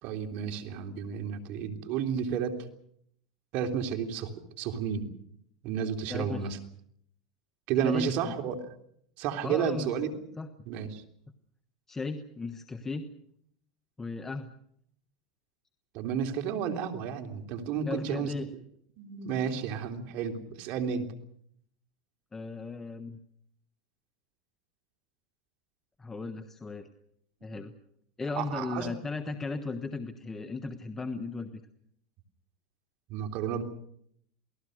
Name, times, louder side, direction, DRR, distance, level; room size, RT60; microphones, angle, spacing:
voice 1, 0.0-2.6 3.5-5.1 5.6-6.6 7.7-8.6 9.2-10.3 10.7-11.0 15.9-18.3 19.0-21.1 28.4-28.9 33.1-33.6, right 7 dB, 50° right, 5 dB, 3.1 m, -32 dB
voice 2, 6.1-6.5 7.8-8.3 9.4-9.9 10.4-10.5 11.9-13.1 14.0-14.5 17.9-18.5 22.3-23.2 26.0-26.9 27.4-27.7 28.2-31.5, left 3 dB, 15° left, 7 dB, 1.3 m, -36 dB
28.5 x 18.5 x 6.5 m, 0.70 s
supercardioid pair, 135°, 3 cm